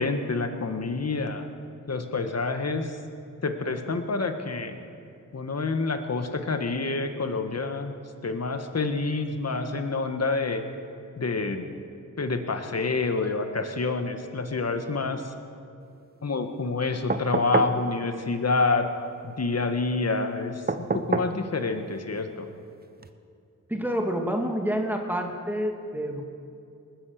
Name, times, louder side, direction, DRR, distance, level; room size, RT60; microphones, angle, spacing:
voice 1, 0.0-1.5 1.9-3.0 3.4-4.8 5.3-8.0 8.2-10.6 11.2-11.8 12.2-15.3 16.2-18.9 19.2-22.5, left 3 dB, 50° left, 7 dB, 1.6 m, -28 dB
sound 1, 17.1-17.8 20.7-21.4 23.0-23.1, right 3 dB, 30° right, 0.9 m, -27 dB
voice 2, 23.7-26.2, equal, 5° right, 2 dB, 2.3 m, -28 dB
20.0 x 9.5 x 6.6 m, 2.5 s
cardioid pair, 45°, 32 cm